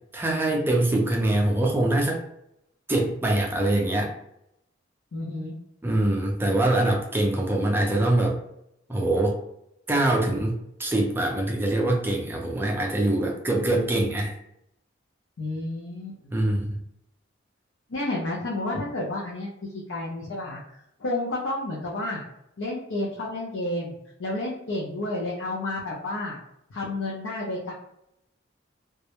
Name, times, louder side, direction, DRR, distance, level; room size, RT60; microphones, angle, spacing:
voice 1, 0.1-2.2 2.9-4.1 5.8-8.4 8.9-9.4 9.9-14.3 16.3-16.8, right 1 dB, 10° right, -1 dB, 0.3 m, -24 dB
voice 2, 5.1-5.6 15.4-16.3 17.9-19.5 19.9-20.6 21.0-22.2 22.6-26.4 26.7-27.7, left 2 dB, 75° left, -4 dB, 0.5 m, -30 dB
2.2 x 2.0 x 2.9 m, 0.78 s
head